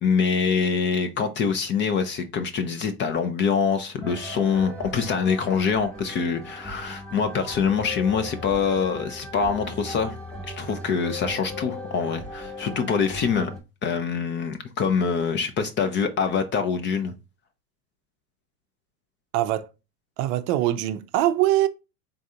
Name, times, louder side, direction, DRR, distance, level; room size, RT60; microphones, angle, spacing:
voice 1, 0.0-10.2 10.5-13.5 13.8-17.1, left 6 dB, 25° left, 0.5 m, -25 dB
sound 1, 4.0-13.6, left 1 dB, ahead, 1.0 m, -38 dB
voice 2, 19.3-19.7 20.2-21.7, right 14 dB, 50° right, 0.6 m, -22 dB
3.8 x 2.5 x 4.2 m
hypercardioid pair, 95°, 47 cm